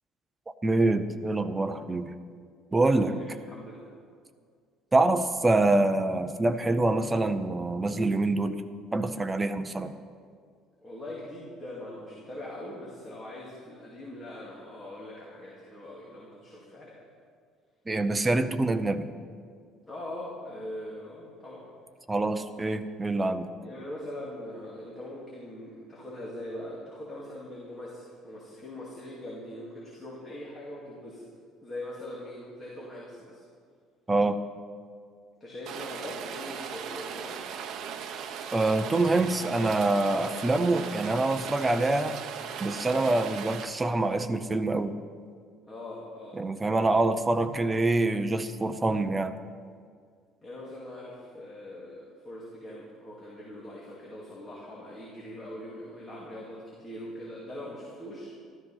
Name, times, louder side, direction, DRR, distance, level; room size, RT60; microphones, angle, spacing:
voice 1, 0.6-2.1 2.7-3.2 4.9-8.6 8.9-9.9 17.9-19.1 22.1-23.5 34.1-34.4 38.5-42.2 42.6-45.0 46.3-49.3, right 2 dB, 10° right, 8 dB, 0.6 m, -25 dB
voice 2, 2.8-4.0 10.8-17.0 19.9-21.7 23.6-31.2 31.6-33.4 35.4-37.4 45.7-46.4 46.9-47.0 50.4-58.3, left 1 dB, 15° left, -5 dB, 2.3 m, -42 dB
Rain, 35.7-43.7, right 7 dB, 50° right, 0.8 m, -38 dB
13.0 x 13.0 x 5.6 m, 2.1 s
cardioid pair, 170°, 0 cm